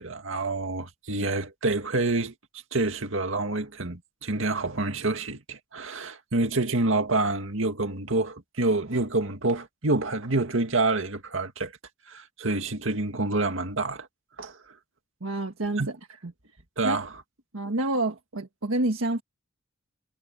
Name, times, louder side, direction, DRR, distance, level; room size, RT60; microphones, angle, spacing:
voice 1, 0.0-2.3 2.7-11.7 12.1-14.1 14.4-14.6 15.8-15.9 16.8-17.1, right 2 dB, 70° right, 2.3 m, -27 dB
voice 2, 15.2-16.0 16.2-16.3 16.8-17.0 17.5-19.2, right 2 dB, 85° right, 1.5 m, -28 dB
head